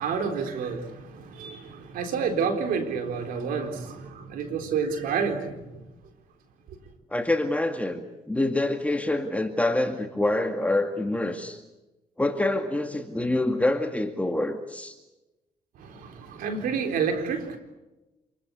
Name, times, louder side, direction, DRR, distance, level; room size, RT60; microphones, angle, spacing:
voice 1, 0.0-5.8 15.8-17.6, right 6 dB, 85° right, 4.0 m, -29 dB
voice 2, 7.1-11.6 12.2-14.9, left 2 dB, 10° left, 2.1 m, -26 dB
28.0 x 21.0 x 8.3 m
cardioid pair, 85°, 15 cm